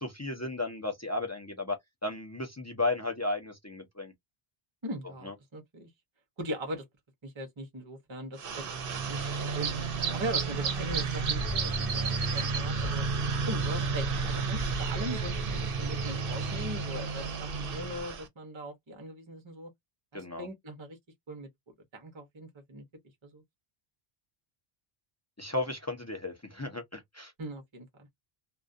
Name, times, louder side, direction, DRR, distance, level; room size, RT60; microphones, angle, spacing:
voice 1, 0.0-1.8 2.0-4.1 5.3-5.4 10.0-10.2 20.1-20.5 25.4-27.3, left 2 dB, 25° left, 0.3 m, -34 dB
voice 2, 4.8-5.9 6.4-6.9 7.2-9.7 10.1-13.1 13.5-19.7 20.1-21.0 21.3-21.5 21.9-22.8 23.2-23.4 27.4-28.1, right 1 dB, 30° right, 0.8 m, -40 dB
sound 1, 8.4-18.3, right 4 dB, 65° right, 0.8 m, -31 dB
2.4 x 2.2 x 2.4 m
omnidirectional pair, 1.0 m